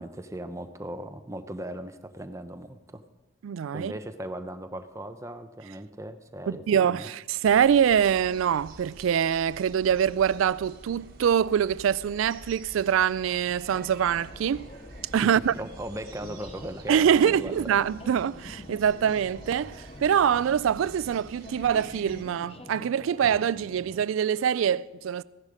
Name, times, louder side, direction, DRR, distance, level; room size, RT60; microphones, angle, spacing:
voice 1, 0.0-3.0 3.7-7.1 15.2-15.3 15.6-17.8, right 1 dB, 15° right, 0.7 m, -38 dB
voice 2, 3.4-3.9 6.5-14.7 15.1-15.5 16.9-25.2, right 8 dB, 75° right, 0.3 m, -24 dB
sound 1, 7.4-22.2, right 2 dB, 45° right, 1.4 m, -48 dB
sound 2, 13.7-24.1, left 1 dB, 30° left, 0.7 m, -47 dB
15.5 x 10.5 x 5.0 m
head